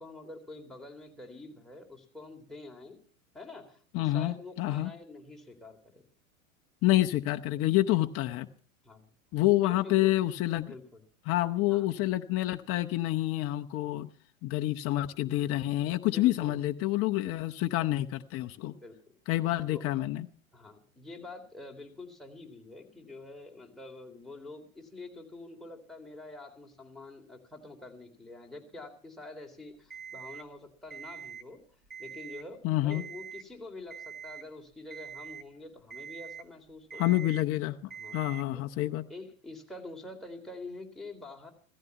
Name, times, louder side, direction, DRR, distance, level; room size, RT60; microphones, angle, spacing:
voice 1, 0.0-3.0 3.3-6.1 8.8-9.1 9.6-10.1 10.6-11.0 11.7-11.9 16.1-16.6 18.8-19.1 19.7-19.8 20.5-31.6 32.0-37.2 38.0-38.2 38.5-38.6 39.1-41.5, left 2 dB, ahead, 0 dB, 3.4 m, -46 dB
voice 2, 3.9-4.9 6.8-8.5 9.3-10.7 11.3-14.1 14.4-18.8 19.3-20.3 32.6-33.0 37.0-37.8 38.1-39.0, left 16 dB, 35° left, 6 dB, 0.8 m, -28 dB
Alarm, 29.9-30.5 30.9-31.5 31.8-32.5 32.9-33.5 33.9-34.5 34.9-35.5 35.9-36.5 36.9-37.5 37.9-38.5, right 7 dB, 25° right, 1.8 m, -44 dB
16.5 x 14.5 x 5.7 m, 0.43 s
hypercardioid pair, 95°, 41 cm